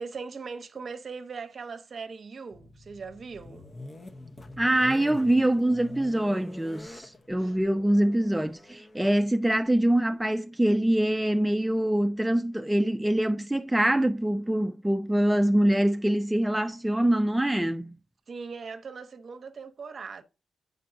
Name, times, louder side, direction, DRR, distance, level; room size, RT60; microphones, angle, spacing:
voice 1, 0.0-3.7 7.4-7.6 18.3-20.2, right 5 dB, 55° right, 0.8 m, -40 dB
sound 1, 2.5-10.3, left 2 dB, 35° left, 0.9 m, -46 dB
voice 2, 4.6-18.0, right 1 dB, 10° right, 0.3 m, -24 dB
7.5 x 5.2 x 2.6 m
cardioid pair, 55°, 0 cm